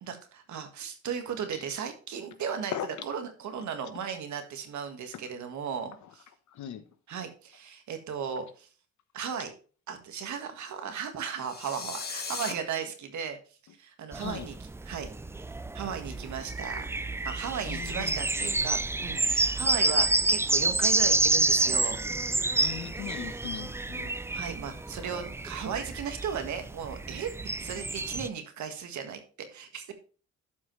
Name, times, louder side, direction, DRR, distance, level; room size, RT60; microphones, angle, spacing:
voice 1, 0.0-2.7 3.1-6.0 7.1-8.7 9.1-9.5 9.9-13.4 13.8-14.5 14.9-15.1 15.4-15.5 15.7-16.8 17.2-22.0 24.3-29.9, right 7 dB, 70° right, 1.7 m, -36 dB
voice 2, 6.5-6.9 14.2-14.5 17.6-18.6 22.5-24.1, left 10 dB, 70° left, 1.2 m, -39 dB
sound 1, 11.3-12.5, left 5 dB, 30° left, 1.4 m, -37 dB
sound 2, 14.1-28.3, right 2 dB, 10° right, 0.3 m, -29 dB
12.0 x 5.5 x 3.2 m
cardioid pair, 90°, 30 cm